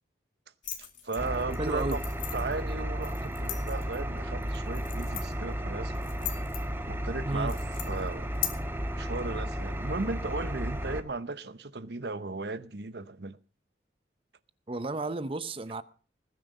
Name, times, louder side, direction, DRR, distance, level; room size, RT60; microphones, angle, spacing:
sound 1, 0.6-8.5, left 11 dB, 45° left, 2.9 m, -41 dB
voice 1, 0.8-2.0 2.3-5.9 6.9-7.6 7.8-8.3 9.0-13.4, right 3 dB, 65° right, 0.9 m, -36 dB
Engine, 1.2-11.0, equal, 15° right, 1.3 m, -33 dB
voice 2, 1.6-2.0 7.2-7.5 14.7-15.8, right 2 dB, 30° right, 0.7 m, -32 dB
20.5 x 9.5 x 5.3 m
head